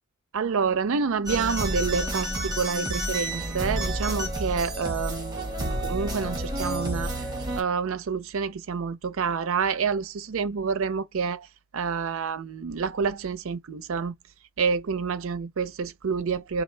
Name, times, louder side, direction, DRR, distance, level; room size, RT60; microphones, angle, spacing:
voice 1, 0.3-7.1 7.6-11.5 11.7-14.1 14.6-16.6, right 5 dB, 65° right, 0.5 m, -28 dB
sound 1, 1.3-7.6, right 1 dB, 20° right, 1.2 m, -30 dB
4.3 x 2.3 x 3.3 m
head